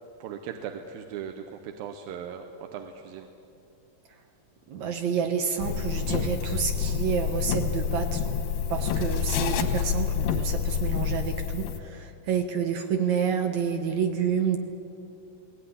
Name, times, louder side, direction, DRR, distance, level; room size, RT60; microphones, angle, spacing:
voice 1, 0.2-3.3, right 8 dB, 90° right, 5 dB, 2.8 m, -38 dB
voice 2, 4.7-8.2 8.7-14.6, right 7 dB, 65° right, 5 dB, 2.3 m, -29 dB
sound 1, 5.6-11.8, left 7 dB, 85° left, 3.0 m, -28 dB
18.5 x 17.5 x 9.8 m, 2.6 s
omnidirectional pair, 4.1 m